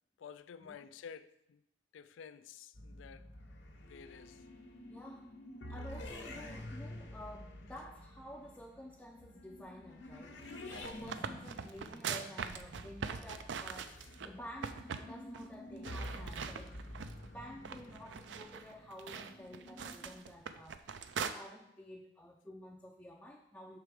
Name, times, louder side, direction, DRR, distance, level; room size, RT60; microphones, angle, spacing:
voice 1, 0.2-1.6 1.9-3.3 3.9-4.4 13.9-14.0, left 7 dB, 90° left, 0.3 m, -51 dB
sound 1, 2.8-20.2, left 1 dB, 70° left, 1.0 m, -49 dB
voice 2, 4.9-5.3 5.7-16.7 17.2-23.8, equal, 10° left, 0.4 m, -51 dB
sound 2, 10.5-14.3 14.6-15.1 15.3-15.5 15.8-17.3 17.6-21.3, right 6 dB, 70° right, 0.4 m, -42 dB
5.9 x 4.7 x 4.9 m
head